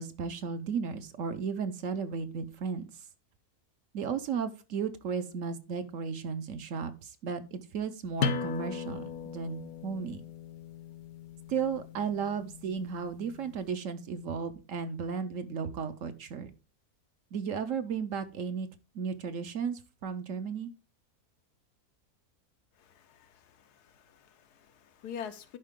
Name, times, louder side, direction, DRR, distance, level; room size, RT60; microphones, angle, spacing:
voice 1, 0.0-3.0 3.9-10.2 11.5-16.5 17.3-18.7 18.9-20.7, right 6 dB, 60° right, 1.0 m, -34 dB
sound 1, 8.2-13.6, left 6 dB, 70° left, 1.2 m, -38 dB
voice 2, 22.7-25.6, left 7 dB, 90° left, 1.4 m, -46 dB
11.0 x 4.8 x 3.6 m
omnidirectional pair, 1.6 m